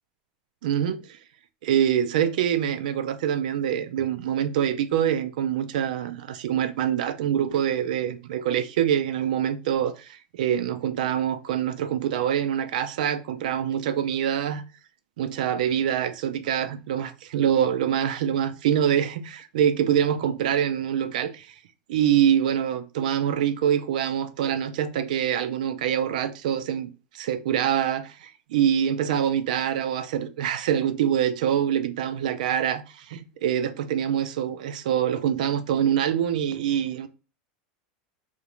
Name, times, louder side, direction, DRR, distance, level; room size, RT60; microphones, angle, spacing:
voice 1, 0.6-1.1 1.6-14.6 15.2-21.5 21.9-26.9 27.1-37.1, right 9 dB, 80° right, 0.3 m, -25 dB
2.4 x 2.1 x 2.9 m
supercardioid pair, 170°, 4 cm